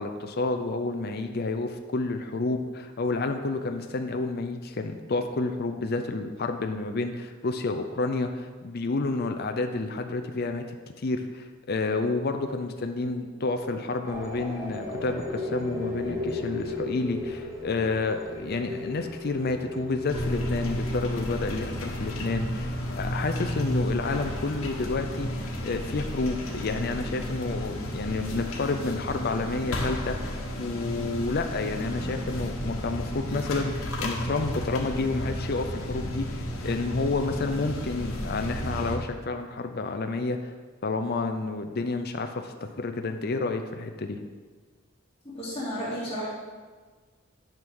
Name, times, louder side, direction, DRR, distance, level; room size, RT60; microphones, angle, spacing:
voice 1, 0.0-40.5 40.8-44.2, left 3 dB, 45° left, 6 dB, 0.5 m, -30 dB
sound 1, 14.0-25.7, left 2 dB, 15° right, 1.4 m, -37 dB
sound 2, 20.1-39.0, equal, 85° left, 1.4 m, -33 dB
voice 2, 45.2-46.3, equal, 30° left, -8 dB, 2.7 m, -32 dB
10.5 x 6.1 x 3.7 m, 1.4 s
head